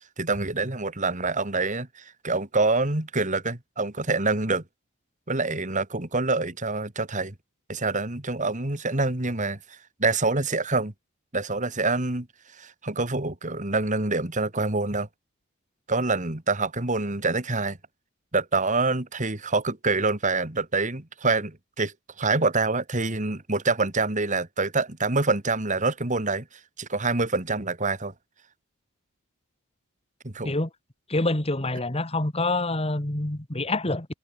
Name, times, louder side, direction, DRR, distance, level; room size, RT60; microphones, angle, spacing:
voice 1, 0.2-4.6 5.3-7.3 7.7-9.6 10.0-10.9 11.3-12.3 12.6-15.1 15.9-17.8 18.3-21.9 22.2-26.5 26.8-28.1 30.2-30.5, right 3 dB, 35° right, 2.2 m, -26 dB
voice 2, 31.1-34.1, left 2 dB, 25° left, 1.9 m, -26 dB
head